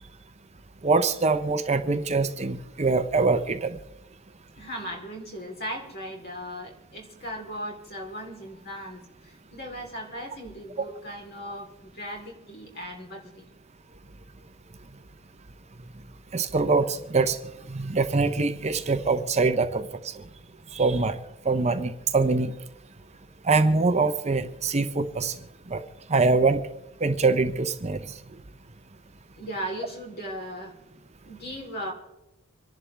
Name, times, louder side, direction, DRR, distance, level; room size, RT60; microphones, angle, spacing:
voice 1, 0.8-3.8 16.3-17.4 17.7-19.8 20.7-21.2 21.4-22.5 23.5-25.3 25.7-25.8 26.1-26.6 27.0-28.0, right 3 dB, 30° right, 8 dB, 0.7 m, -23 dB
voice 2, 4.6-13.5 29.3-30.7 31.2-31.9, equal, 45° left, 1 dB, 3.7 m, -37 dB
26.5 x 11.0 x 3.4 m, 0.95 s
head